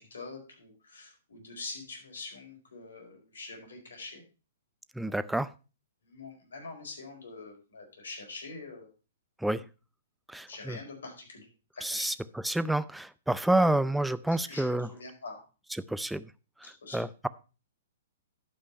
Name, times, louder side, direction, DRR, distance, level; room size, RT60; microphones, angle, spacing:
voice 1, 0.0-4.2 5.1-5.3 6.0-8.9 10.5-12.1 14.3-15.4 16.6-17.0, left 3 dB, 75° left, 1 dB, 4.6 m, -45 dB
voice 2, 4.9-5.5 9.4-9.6 10.3-10.8 11.8-14.9 15.9-16.3 16.6-17.3, right 1 dB, 5° right, 16 dB, 0.5 m, -29 dB
11.5 x 5.4 x 5.4 m, 0.34 s
hypercardioid pair, 125°, 0 cm